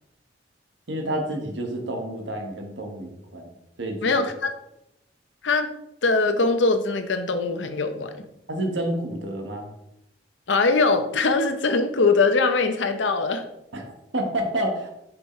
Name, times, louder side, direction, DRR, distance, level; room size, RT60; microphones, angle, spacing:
voice 1, 0.9-4.1 8.5-9.7 13.7-14.9, right 1 dB, 80° right, 3 dB, 1.3 m, -29 dB
voice 2, 4.0-4.5 5.4-5.7 6.0-8.2 10.5-13.5, left 3 dB, 85° left, 8 dB, 0.8 m, -22 dB
7.1 x 5.1 x 3.2 m, 0.82 s
head